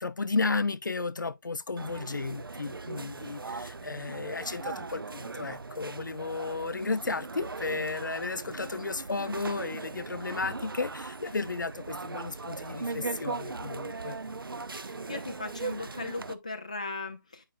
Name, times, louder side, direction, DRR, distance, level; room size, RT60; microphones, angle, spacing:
voice 1, 0.0-14.2, left 4 dB, 60° left, 0.6 m, -33 dB
sound 1, 1.8-16.3, right 4 dB, 85° right, 0.7 m, -39 dB
voice 2, 14.7-17.4, left 3 dB, 20° left, 0.5 m, -38 dB
8.9 x 5.2 x 2.5 m
figure-of-eight pair, 175°, 11 cm